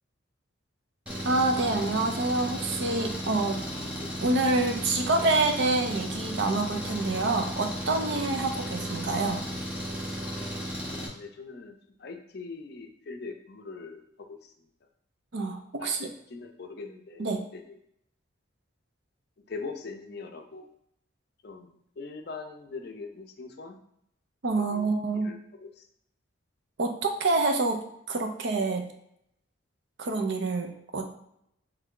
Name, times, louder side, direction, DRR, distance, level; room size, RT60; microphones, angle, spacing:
Engine, 1.1-11.1, equal, 5° right, 0.5 m, -35 dB
voice 1, 1.2-3.7 4.2-9.5 15.3-16.1 17.2-17.5 24.4-25.3 26.8-28.9 30.0-31.0, right 2 dB, 60° right, 5 dB, 0.5 m, -27 dB
voice 2, 10.9-11.8 12.0-14.0 14.3-14.4 15.8-17.6 19.5-20.7 21.4-21.7 22.0-23.8 24.6-24.9 25.2-25.7, left 4 dB, 50° left, 5 dB, 0.5 m, -41 dB
3.4 x 3.2 x 3.7 m, 0.73 s
head